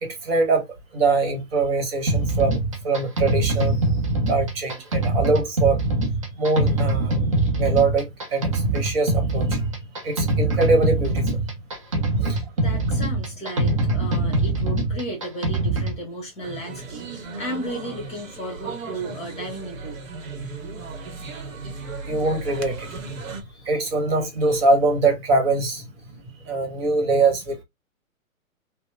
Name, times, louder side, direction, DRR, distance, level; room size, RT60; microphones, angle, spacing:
voice 1, 0.0-0.7 0.9-3.8 4.3-5.8 6.4-7.2 7.6-9.6 10.0-11.4 12.2-12.4 22.1-23.0 23.5-25.8 26.4-27.6, right 3 dB, 45° right, 1.2 m, -23 dB
sound 1, 2.1-16.0, right 2 dB, 25° right, 0.4 m, -23 dB
voice 2, 12.6-20.0, right 1 dB, 15° left, 1.1 m, -34 dB
sound 2, 16.4-23.4, right 4 dB, 65° right, 0.9 m, -36 dB
2.9 x 2.0 x 2.3 m
figure-of-eight pair, 125°, 42 cm